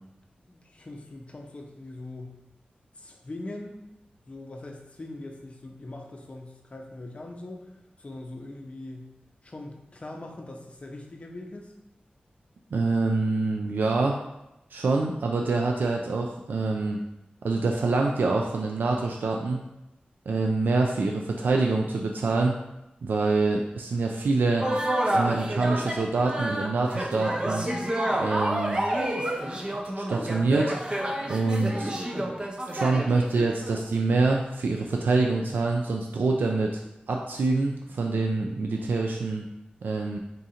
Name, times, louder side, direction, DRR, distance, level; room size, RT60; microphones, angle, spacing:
voice 1, 0.4-2.4 2.9-3.8 4.3-7.7 8.0-9.1 9.4-11.7 29.2-29.7, left 2 dB, 40° left, 1 dB, 0.6 m, -41 dB
voice 2, 12.7-14.2 14.7-17.0 17.4-19.6 20.3-22.6 23.0-24.7 25.1-27.7 28.2-28.8 30.1-30.8 31.3-31.9 32.7-36.8 37.1-39.4 39.8-40.2, right 3 dB, 85° right, 1 dB, 0.3 m, -25 dB
sound 1, 24.6-33.8, right 1 dB, 30° right, 0.5 m, -29 dB
3.8 x 2.5 x 4.2 m, 0.91 s
wide cardioid pair, 100°, 3 cm